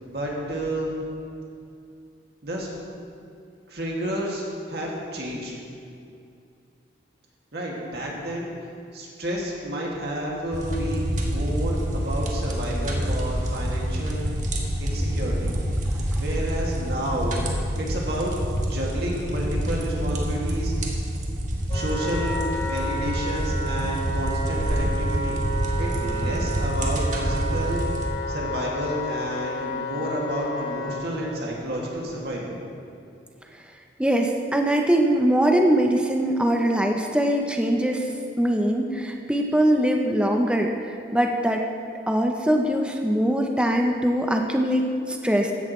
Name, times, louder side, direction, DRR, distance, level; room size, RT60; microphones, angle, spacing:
voice 1, 0.1-0.9 2.4-2.7 3.7-5.5 7.5-8.5 8.9-14.2 14.8-15.6 16.1-17.4 17.8-18.3 18.6-20.7 21.7-25.4 25.8-27.8 28.3-32.6, right 1 dB, 60° right, -3 dB, 2.2 m, -30 dB
sound 1, 10.5-28.1, equal, 40° right, 1.4 m, -27 dB
Wind instrument woodwind instrument, 21.7-31.0, equal, 25° left, 1.3 m, -32 dB
voice 2, 34.0-41.6 42.1-45.5, right 1 dB, 5° right, 2 dB, 0.6 m, -22 dB
15.5 x 11.0 x 3.1 m, 2.5 s
head